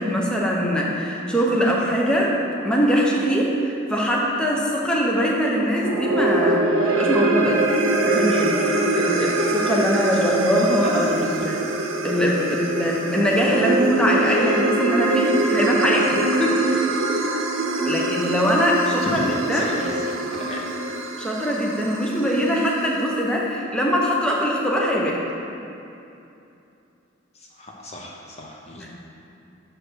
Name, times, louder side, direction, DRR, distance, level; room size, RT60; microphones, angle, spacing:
voice 1, 0.0-2.3 2.6-7.6 8.1-11.6 12.0-16.7 17.8-19.2 19.5-19.7 21.2-25.2 28.8-28.9, equal, 5° left, -3 dB, 0.8 m, -22 dB
sound 1, 5.7-22.2, right 2 dB, 70° right, 0.7 m, -23 dB
voice 2, 10.8-11.5 19.0-20.6 27.3-29.0, left 1 dB, 35° left, -1 dB, 0.7 m, -36 dB
6.1 x 5.0 x 6.3 m, 2.7 s
head